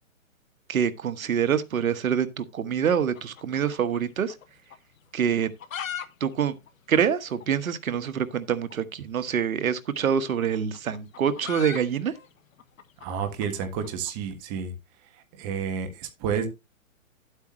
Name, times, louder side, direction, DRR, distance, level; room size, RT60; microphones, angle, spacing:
voice 1, 0.7-4.3 5.1-5.5 6.2-6.5 6.9-12.1, right 8 dB, 85° right, 1.3 m, -26 dB
sound 1, 3.1-4.5 4.7-4.8 5.3-6.1 6.3-6.4 6.7-6.8 7.3-7.5 8.6-8.8 9.9-14.2, left 9 dB, 75° left, 1.4 m, -39 dB
voice 2, 13.0-14.7 15.4-16.5, right 7 dB, 25° right, 1.5 m, -30 dB
11.0 x 8.3 x 3.1 m
hypercardioid pair, 160°, 41 cm